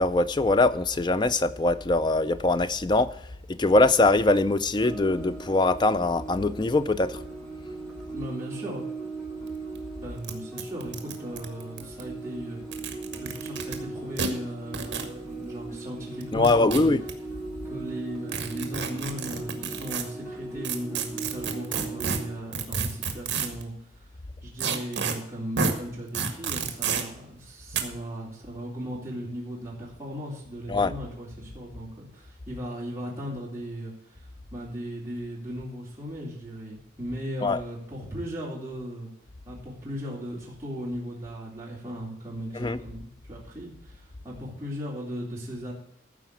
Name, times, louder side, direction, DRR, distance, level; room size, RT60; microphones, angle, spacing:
voice 1, 0.0-3.1 3.5-7.2 16.3-17.0 30.7-30.9 37.4-37.6 42.5-42.8, left 2 dB, 25° left, 0.4 m, -22 dB
sound 1, 4.8-22.4, right 3 dB, 5° left, 2.2 m, -39 dB
voice 2, 8.1-8.9 10.0-12.6 13.1-16.9 17.6-24.1 24.4-39.1 39.5-45.7, equal, 15° right, 3.4 m, -37 dB
sound 2, 9.5-9.6 9.8-9.9 10.2-10.3 10.6-12.0 12.6-13.8 14.2-14.3 14.7-15.1 16.2-17.1 18.3-20.0 20.6-23.6 24.6-25.1 25.6-25.7 26.1-27.0 27.7-27.8, right 5 dB, 65° right, 1.7 m, -29 dB
13.5 x 5.0 x 8.3 m
head